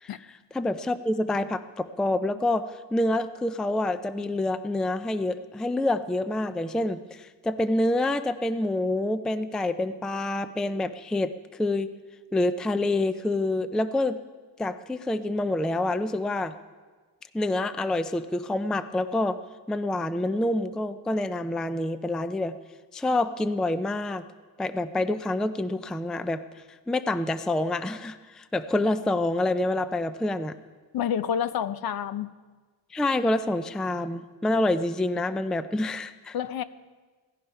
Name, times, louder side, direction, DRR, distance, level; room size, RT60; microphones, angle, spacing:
voice 1, 0.0-11.9 12.3-14.2 14.6-16.5 17.3-19.4 19.7-22.6 22.9-24.2 24.6-30.5 32.9-36.4, left 2 dB, ahead, 12 dB, 0.4 m, -27 dB
voice 2, 30.9-32.3 36.3-36.6, left 9 dB, 55° left, 13 dB, 0.8 m, -28 dB
17.5 x 14.5 x 5.7 m, 1.4 s
cardioid pair, 135°, 43 cm